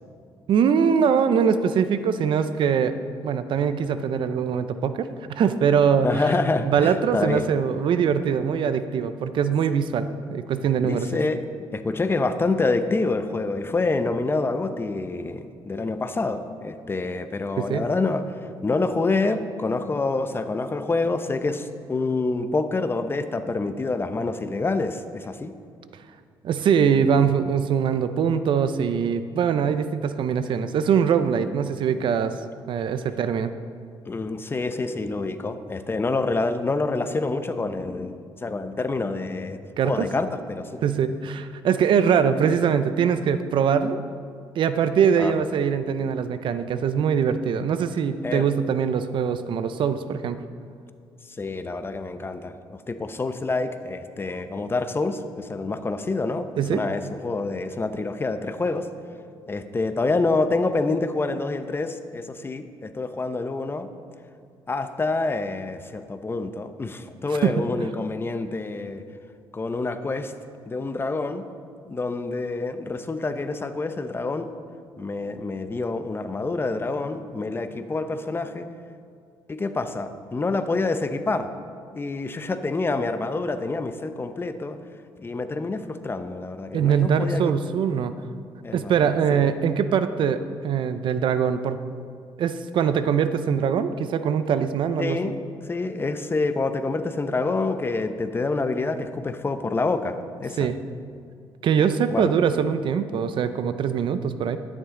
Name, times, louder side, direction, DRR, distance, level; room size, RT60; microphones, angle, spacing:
voice 1, 0.5-2.9 3.2-5.1 5.3-6.3 6.6-11.1 17.6-17.9 26.4-32.3 32.7-33.5 39.8-40.1 40.8-44.0 44.6-50.4 56.6-56.8 67.4-67.7 86.7-88.1 88.7-91.8 92.4-95.2 100.6-100.8 101.6-104.6, right 7 dB, 60° right, 11 dB, 0.6 m, -22 dB
voice 2, 6.0-7.4 10.8-11.4 11.7-18.2 18.6-25.5 34.1-40.8 45.2-45.3 48.2-48.5 51.4-58.9 59.5-63.9 64.7-69.0 69.5-70.3 70.7-71.4 71.8-74.5 75.0-78.7 79.5-81.5 81.9-84.8 85.2-87.5 88.6-89.5 95.0-95.3 95.7-100.7 102.1-102.3, left 3 dB, 25° left, 9 dB, 0.7 m, -27 dB
12.0 x 10.0 x 3.8 m, 2.2 s
cardioid pair, 90°, 9 cm